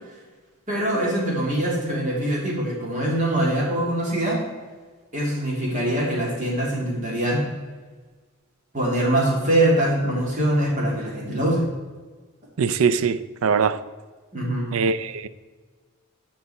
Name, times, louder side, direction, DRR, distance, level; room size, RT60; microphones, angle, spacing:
voice 1, 0.7-4.4 5.1-7.4 8.7-11.6 14.3-14.7, right 1 dB, 35° right, -3 dB, 2.4 m, -23 dB
voice 2, 12.6-13.8 14.7-15.3, right 6 dB, 70° right, 14 dB, 0.4 m, -22 dB
13.0 x 4.6 x 4.2 m, 1.4 s
head